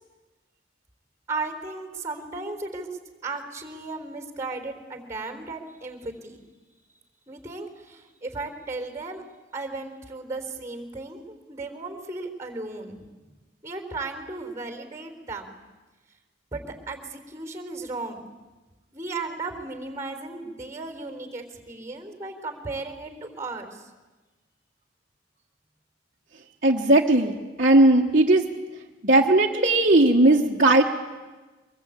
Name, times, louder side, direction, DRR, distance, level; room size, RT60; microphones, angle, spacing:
voice 1, 1.3-2.9 3.2-6.4 7.3-9.2 9.5-13.0 13.6-15.6 16.5-18.3 18.9-23.8, right 3 dB, 15° right, 5 dB, 3.7 m, -35 dB
voice 2, 26.6-28.5 29.0-30.8, right 2 dB, 45° right, -4 dB, 1.4 m, -18 dB
24.0 x 21.5 x 8.6 m, 1.2 s
head